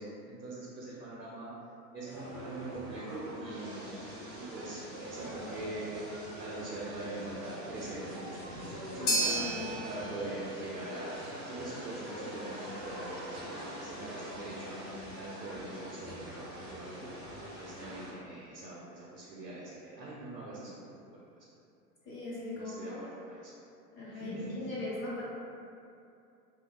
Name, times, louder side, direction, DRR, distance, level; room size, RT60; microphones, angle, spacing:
voice 1, 0.0-1.5 1.9-4.0 4.4-4.8 5.1-6.0 6.4-9.4 9.9-11.2 11.5-13.5 13.8-16.4 16.7-17.1 17.6-20.9 21.3-21.4 22.5-23.6 24.1-24.7, right 2 dB, 80° right, -7 dB, 0.6 m, -43 dB
sound 1, 2.0-18.1, equal, 15° right, 0.4 m, -44 dB
voice 2, 9.0-9.9 22.1-23.1 24.0-25.2, left 2 dB, 35° left, -8 dB, 0.7 m, -39 dB
sound 2, 9.1-17.4, right 1 dB, 65° left, 0.7 m, -38 dB
2.7 x 2.0 x 2.2 m, 2.6 s
figure-of-eight pair, 95°, 49 cm